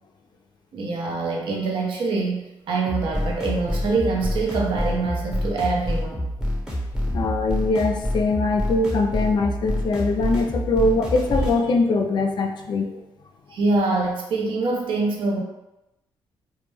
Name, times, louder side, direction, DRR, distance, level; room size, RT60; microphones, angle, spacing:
voice 1, 0.7-6.3 13.5-15.4, right 3 dB, 70° right, 0 dB, 0.6 m, -24 dB
sound 1, 2.9-11.6, equal, 5° right, 0.8 m, -27 dB
voice 2, 7.1-13.0, left 3 dB, 55° left, 3 dB, 0.4 m, -22 dB
2.2 x 2.1 x 3.1 m, 0.93 s
cardioid pair, 95°, 9 cm